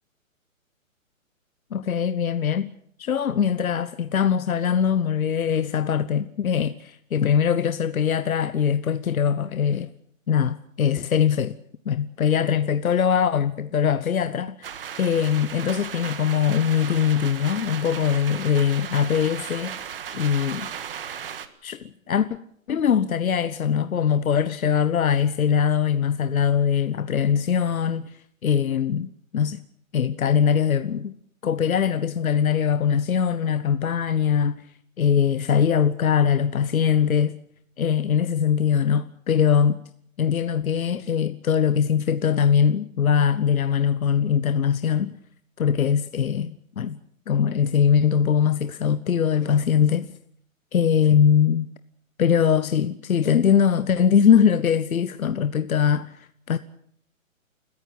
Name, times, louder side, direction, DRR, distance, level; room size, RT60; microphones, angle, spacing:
voice 1, 1.7-2.7 3.0-9.9 10.3-11.6 11.9-14.7 15.0-19.8 20.1-20.7 21.6-22.3 22.7-28.0 28.4-29.6 29.9-31.1 31.4-34.6 35.0-37.4 37.8-39.8 40.2-45.1 45.6-47.0 47.3-50.1 50.7-51.7 52.2-56.6, left 8 dB, 80° left, 1.1 m, -22 dB
sound 1, 14.6-21.5, right 8 dB, 40° right, 1.6 m, -36 dB
28.0 x 15.0 x 7.8 m
hypercardioid pair, 165°, 41 cm